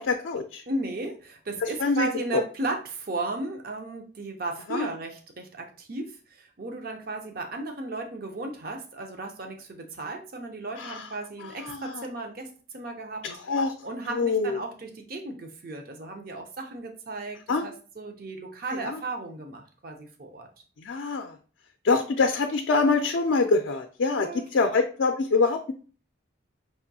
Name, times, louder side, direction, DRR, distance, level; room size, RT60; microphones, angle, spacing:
voice 1, 0.0-0.6 1.6-2.4 4.7-4.9 10.8-11.1 11.4-12.0 13.2-13.7 14.1-14.6 17.5-17.7 18.7-19.0 20.8-21.4 21.8-25.7, left 4 dB, 70° left, 4 dB, 0.4 m, -25 dB
voice 2, 0.7-13.2 13.8-20.5 24.1-24.7, right 2 dB, 50° right, 3 dB, 0.6 m, -35 dB
4.8 x 2.6 x 2.7 m, 0.39 s
head